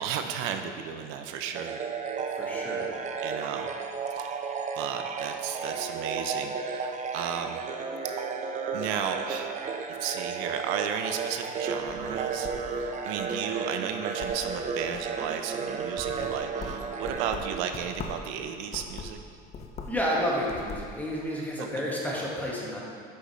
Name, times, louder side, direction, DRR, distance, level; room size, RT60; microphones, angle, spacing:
voice 1, 0.0-1.8 3.2-3.7 4.1-4.4 4.8-7.6 8.0-8.1 8.7-9.6 10.0-19.2 21.6-21.8, right 8 dB, 85° right, 6 dB, 0.5 m, -34 dB
sound 1, 1.6-18.3, right 5 dB, 40° right, 0.6 m, -33 dB
voice 2, 2.3-2.9 19.9-22.8, equal, 10° left, -5 dB, 1.7 m, -30 dB
sound 2, 11.8-13.2 13.6-13.9 14.2-15.2 15.7-18.3 18.7-20.1 20.4-20.9, left 4 dB, 35° left, 0.7 m, -41 dB
8.2 x 6.1 x 3.2 m, 2.2 s
cardioid pair, 105°, 20 cm